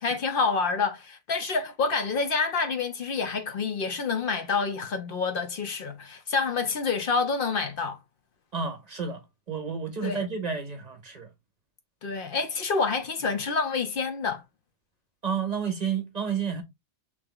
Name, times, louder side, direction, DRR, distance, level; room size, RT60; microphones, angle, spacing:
voice 1, 0.0-8.0 10.0-10.2 12.0-14.4, left 4 dB, 60° left, 0.8 m, -28 dB
voice 2, 8.5-11.3 15.2-16.6, right 6 dB, 45° right, 0.7 m, -31 dB
3.4 x 3.0 x 3.6 m
omnidirectional pair, 1.1 m